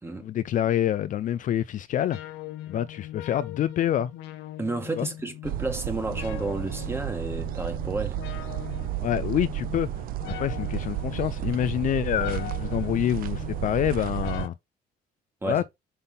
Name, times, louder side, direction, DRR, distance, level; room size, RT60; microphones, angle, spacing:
voice 1, 0.2-2.2 2.7-4.1 5.0-5.1 9.0-9.9 10.3-14.5 15.5-15.6, left 11 dB, 50° left, 0.4 m, -26 dB
sound 1, 2.1-14.5, left 13 dB, 90° left, 0.8 m, -41 dB
voice 2, 4.6-8.2 15.4-15.6, right 2 dB, 15° right, 1.6 m, -31 dB
sound 2, 5.4-14.5, right 16 dB, 60° right, 0.4 m, -32 dB
5.5 x 3.6 x 5.8 m
cardioid pair, 110°, 17 cm